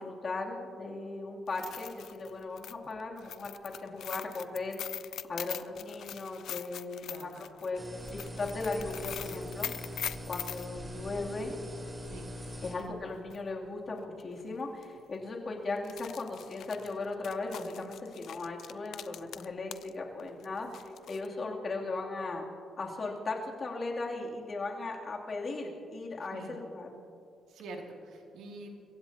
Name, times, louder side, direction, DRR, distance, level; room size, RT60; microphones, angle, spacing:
voice 1, 0.0-4.8 5.3-7.8 8.4-9.9 10.3-11.6 12.6-22.4 22.8-26.9, left 3 dB, 40° left, -2 dB, 2.9 m, -37 dB
sound 1, 1.5-10.7 12.8-12.9 13.3-13.4 14.2-14.4 14.7-14.8 15.7-19.9 20.2-21.3, left 10 dB, 70° left, 0.5 m, -42 dB
voice 2, 7.1-7.4 12.0-12.3 26.2-26.6 27.5-28.7, right 2 dB, 80° right, 1 dB, 2.5 m, -46 dB
sound 2, 7.8-12.8, equal, 20° right, 3.8 m, -42 dB
30.0 x 16.0 x 2.9 m, 2.6 s
cardioid pair, 90°, 0 cm